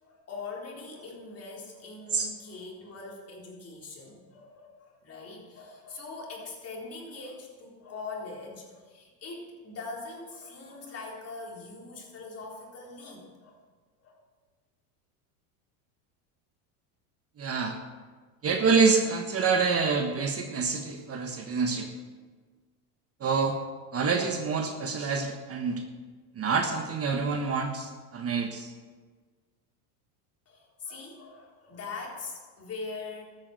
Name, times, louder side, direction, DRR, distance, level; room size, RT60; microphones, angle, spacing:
voice 1, 0.0-13.6 14.0-14.2 30.5-33.2, left 3 dB, 30° left, -2 dB, 3.9 m, -42 dB
voice 2, 17.4-17.8 18.4-21.9 23.2-23.6 23.9-25.8 26.3-28.7, right 5 dB, 30° right, 5 dB, 1.3 m, -27 dB
13.0 x 8.9 x 6.7 m, 1.4 s
supercardioid pair, 110°, 46 cm